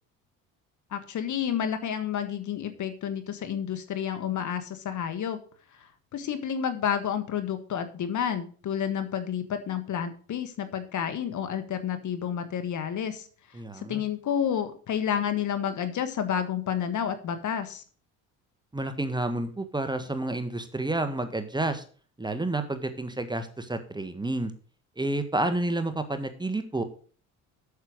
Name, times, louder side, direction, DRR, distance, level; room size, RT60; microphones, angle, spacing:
voice 1, 0.9-5.4 6.1-13.3 13.7-17.8, left 8 dB, 50° left, 9 dB, 1.6 m, -30 dB
voice 2, 13.5-14.0 18.7-21.8 22.2-24.5 25.0-26.8, right 2 dB, 10° right, 8 dB, 1.5 m, -30 dB
8.4 x 6.7 x 6.2 m, 0.42 s
supercardioid pair, 75°, 37 cm